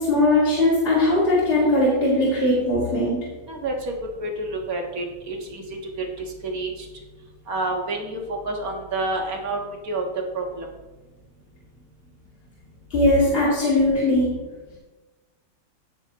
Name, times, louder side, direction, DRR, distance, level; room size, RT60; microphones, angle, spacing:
voice 1, 0.0-3.2 12.9-14.4, left 1 dB, 25° left, -8 dB, 3.2 m, -19 dB
voice 2, 3.5-3.9 4.2-5.6 6.0-6.7 7.5-9.6 9.8-10.0 10.3-10.7, right 2 dB, 45° right, 1 dB, 1.9 m, -28 dB
16.5 x 6.4 x 3.1 m, 1.2 s
omnidirectional pair, 2.4 m